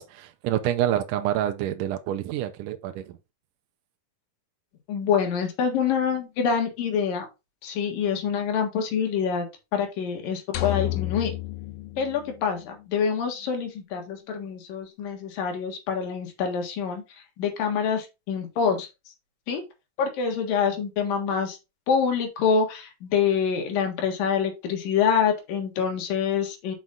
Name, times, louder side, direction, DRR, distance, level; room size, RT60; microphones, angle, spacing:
voice 1, 0.0-3.2, right 12 dB, 75° right, 2.1 m, -27 dB
voice 2, 4.9-7.3 7.6-9.5 9.7-11.3 12.0-17.0 17.4-18.9 19.5-19.6 20.0-21.6 21.9-26.7, left 6 dB, 75° left, 3.2 m, -26 dB
sound 1, 10.5-12.8, left 17 dB, 90° left, 2.6 m, -31 dB
6.1 x 5.4 x 3.7 m
omnidirectional pair, 4.1 m